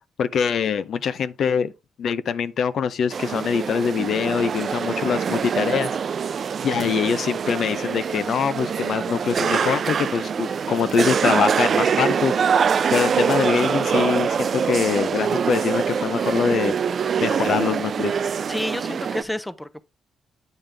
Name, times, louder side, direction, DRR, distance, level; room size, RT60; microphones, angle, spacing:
voice 1, 0.2-1.7 2.0-5.9 6.6-12.3 12.9-16.7 17.2-18.1, left 7 dB, 65° left, 0.6 m, -23 dB
sound 1, 3.1-19.2, right 6 dB, 55° right, 0.4 m, -24 dB
voice 2, 18.5-19.8, left 1 dB, 5° left, 0.7 m, -30 dB
9.0 x 5.2 x 3.3 m
cardioid pair, 90°, 0 cm